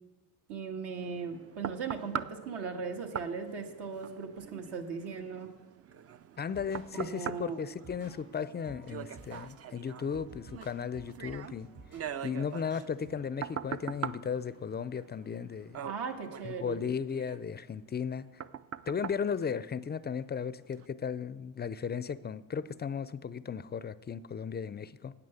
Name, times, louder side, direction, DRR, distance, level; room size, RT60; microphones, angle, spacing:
voice 1, 0.5-5.5 6.9-7.6 15.8-16.9, right 5 dB, 70° right, 3 dB, 1.7 m, -38 dB
sound 1, 1.0-20.2 20.7-20.9, right 8 dB, 35° right, 0.5 m, -43 dB
voice 2, 6.4-11.7 12.2-15.8 16.4-18.3 18.9-25.1, left 6 dB, 25° left, 16 dB, 0.4 m, -35 dB
sound 2, 6.4-13.1, right 3 dB, 55° right, 4.2 m, -55 dB
9.7 x 8.4 x 7.0 m, 1.2 s
supercardioid pair, 75°, 42 cm